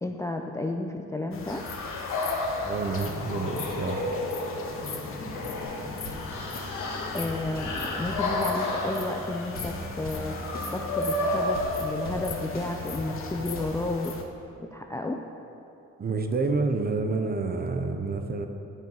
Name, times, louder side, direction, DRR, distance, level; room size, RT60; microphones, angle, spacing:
voice 1, 0.0-1.6 7.1-10.3 10.7-14.1 14.6-15.2, left 2 dB, 10° left, 3 dB, 0.4 m, -32 dB
sound 1, 1.3-14.2, left 4 dB, 45° left, 0.9 m, -39 dB
sound 2, 1.5-12.5, left 1 dB, 80° left, 1.6 m, -32 dB
voice 2, 2.6-4.1 16.0-18.5, right 3 dB, 30° right, 6 dB, 0.7 m, -28 dB
sound 3, 5.6-13.7, left 1 dB, 30° left, 1.7 m, -41 dB
9.6 x 4.6 x 5.3 m, 2.8 s
cardioid pair, 90°, 30 cm